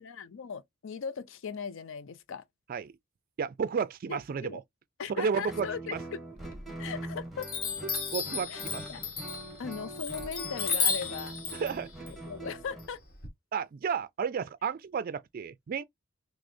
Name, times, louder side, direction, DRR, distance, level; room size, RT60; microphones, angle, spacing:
voice 1, 0.0-2.4 4.1-4.6 5.0-6.2 6.8-7.5 8.5-8.6 8.9-9.0 9.6-11.4 12.3-13.0, left 6 dB, 65° left, 0.5 m, -38 dB
voice 2, 3.4-4.6 5.1-6.0 8.1-8.9 11.5-11.9 13.5-15.8, right 6 dB, 45° right, 0.3 m, -32 dB
Guitar, 5.5-12.9, right 1 dB, ahead, 1.1 m, -43 dB
Chime, 6.4-7.0 7.4-13.3, left 5 dB, 45° left, 1.3 m, -34 dB
6.0 x 2.0 x 2.6 m
head